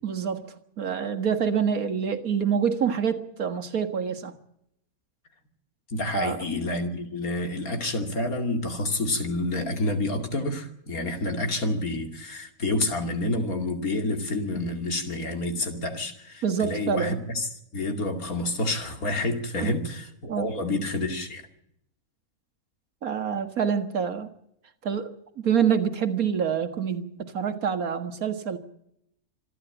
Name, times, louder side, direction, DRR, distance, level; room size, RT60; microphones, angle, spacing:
voice 1, 0.0-4.3 6.1-6.4 16.4-17.2 19.6-19.7 20.3-20.5 23.0-24.3 24.8-28.6, right 7 dB, 80° right, 2.0 m, -26 dB
voice 2, 5.9-21.4, left 2 dB, 75° left, 3.0 m, -29 dB
26.5 x 11.5 x 8.9 m
omnidirectional pair, 1.5 m